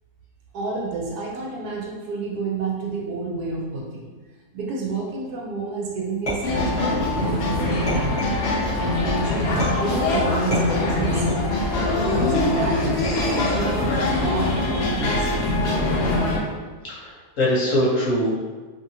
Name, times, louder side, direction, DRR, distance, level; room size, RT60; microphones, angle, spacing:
voice 1, 0.5-4.1 4.5-8.3 8.8-11.5 11.9-15.5, right 3 dB, 75° right, -2 dB, 1.1 m, -30 dB
sound 1, 6.3-7.2 7.9-8.8 9.6-10.0 10.5-11.6 12.1-12.5 13.0-13.7 14.4-14.9, equal, 30° left, 0.7 m, -31 dB
sound 2, 6.4-16.4, left 2 dB, 80° left, 0.5 m, -23 dB
voice 2, 16.9-18.4, left 1 dB, 60° left, -8 dB, 1.0 m, -22 dB
2.7 x 2.6 x 2.6 m, 1.3 s
omnidirectional pair, 1.8 m